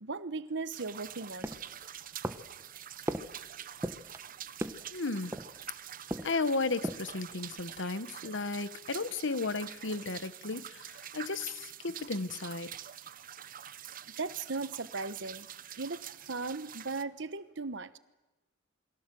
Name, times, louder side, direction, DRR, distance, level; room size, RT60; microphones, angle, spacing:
voice 1, 0.0-1.5 14.2-15.5 15.8-18.0, right 3 dB, 65° right, 1.1 m, -37 dB
sound 1, 0.7-17.0, right 10 dB, 45° right, 0.8 m, -46 dB
sound 2, 1.4-1.8 2.2-2.6 3.1-3.4 3.8-4.2 4.6-4.9 5.3-5.7 6.1-6.5 6.7-7.2 7.6-7.7, right 1 dB, 15° right, 1.1 m, -37 dB
voice 2, 4.9-5.4 6.2-12.7, left 3 dB, 65° left, 1.1 m, -34 dB
28.5 x 22.0 x 7.7 m
head